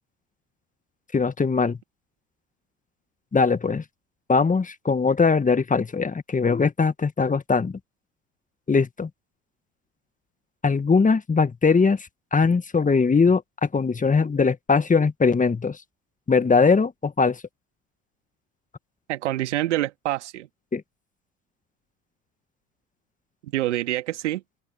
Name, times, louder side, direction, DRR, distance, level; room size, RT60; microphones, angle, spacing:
voice 1, 1.1-1.8 3.3-3.8 4.3-7.7 8.7-9.1 10.6-12.0 12.3-15.8 16.3-17.4 20.7-20.8, left 4 dB, 20° left, 1.9 m, -21 dB
voice 2, 19.1-20.5 23.4-24.4, right 15 dB, 80° right, 2.2 m, -26 dB
hypercardioid pair, 65°, 35 cm